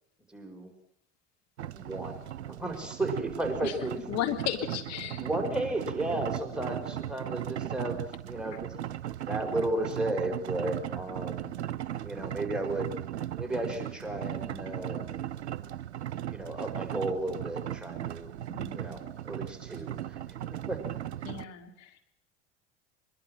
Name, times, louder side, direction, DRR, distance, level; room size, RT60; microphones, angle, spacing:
voice 1, 0.3-0.7 1.7-4.2 5.1-8.7 9.2-11.6 12.0-12.9 13.4-15.1 16.3-18.3 18.7-20.8, right 1 dB, 5° right, 2 dB, 5.6 m, -34 dB
sound 1, 1.6-21.4, right 12 dB, 70° right, 0.9 m, -37 dB
voice 2, 4.1-5.2 18.5-18.9 21.2-22.0, left 10 dB, 50° left, 4 dB, 3.6 m, -34 dB
23.5 x 22.5 x 6.2 m, 0.69 s
figure-of-eight pair, 65°, 34 cm